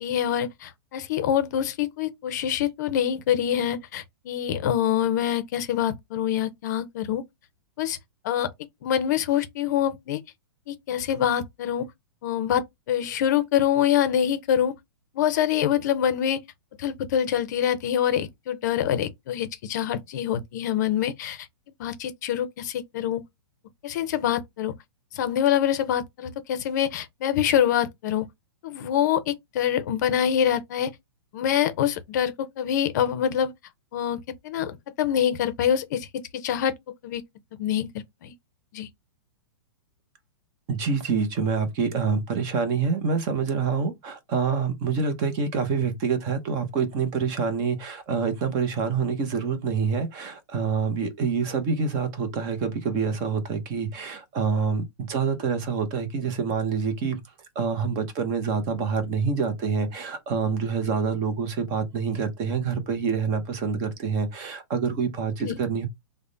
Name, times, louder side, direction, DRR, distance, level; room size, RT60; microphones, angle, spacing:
voice 1, 0.0-7.2 7.8-8.0 8.2-8.5 8.8-10.2 10.7-11.9 12.2-14.7 15.1-16.4 16.8-21.5 21.8-23.2 23.8-24.7 25.1-28.3 28.6-30.9 31.3-33.5 33.9-34.2 34.4-36.1 36.4-36.7 37.0-37.2 37.6-37.9 38.2-38.3 38.7-38.9 65.4-65.5, left 10 dB, 45° left, 0.6 m, -25 dB
voice 2, 40.7-57.2 57.5-65.9, right 5 dB, 25° right, 0.7 m, -26 dB
3.4 x 2.1 x 3.8 m
hypercardioid pair, 160°, 13 cm